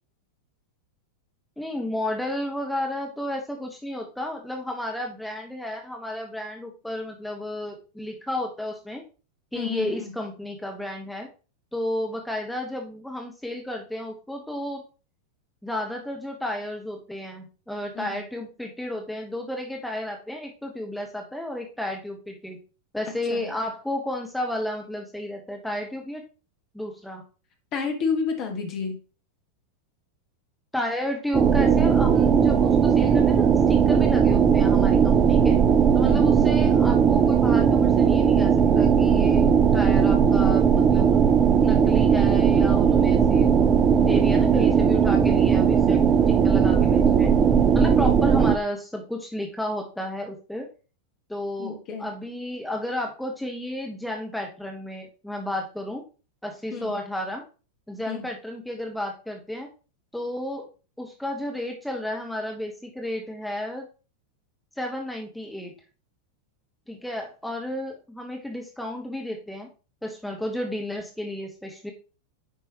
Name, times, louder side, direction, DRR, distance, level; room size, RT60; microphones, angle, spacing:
voice 1, 1.6-9.0 9.5-11.3 11.7-14.8 15.6-22.6 22.9-26.2 26.7-27.2 30.7-35.6 35.9-41.2 41.6-47.3 47.7-50.7 51.3-56.0 56.4-57.4 57.9-59.7 60.1-60.7 61.0-63.9 64.8-65.7 66.9-69.7 70.0-71.9, left 1 dB, ahead, 1 dB, 1.3 m, -32 dB
voice 2, 9.5-10.1 17.9-18.2 23.3-23.5 27.7-28.9 36.0-36.3 51.6-52.1 56.7-56.9 58.1-58.3, left 5 dB, 35° left, 4 dB, 1.8 m, -30 dB
sound 1, 31.3-48.6, right 7 dB, 25° right, 0.7 m, -18 dB
9.5 x 5.4 x 3.1 m, 0.35 s
figure-of-eight pair, 90°, 0 cm